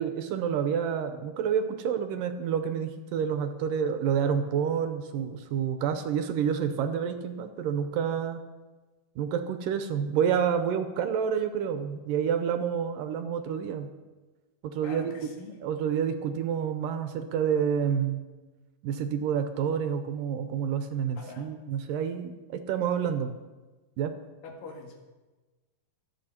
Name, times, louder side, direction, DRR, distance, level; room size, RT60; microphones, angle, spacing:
voice 1, 0.0-8.4 9.2-13.9 14.6-15.1 15.6-18.2 18.8-23.4 24.0-24.1, right 8 dB, 75° right, 8 dB, 2.3 m, -28 dB
voice 2, 14.8-15.6 21.2-21.5 24.4-25.0, left 3 dB, 70° left, 1 dB, 3.6 m, -43 dB
25.0 x 8.7 x 4.4 m, 1.2 s
omnidirectional pair, 4.2 m